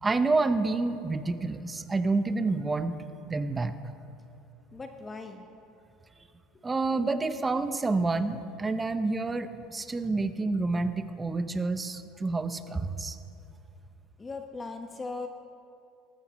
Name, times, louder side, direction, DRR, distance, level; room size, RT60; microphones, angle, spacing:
voice 1, 0.0-3.0 3.3-3.7 6.6-13.2, right 3 dB, 20° right, 10 dB, 0.7 m, -28 dB
voice 2, 4.7-5.5 6.5-6.6 14.2-15.3, left 3 dB, 20° left, 5 dB, 0.9 m, -39 dB
18.5 x 15.0 x 3.1 m, 2.6 s
supercardioid pair, 100°, 0 cm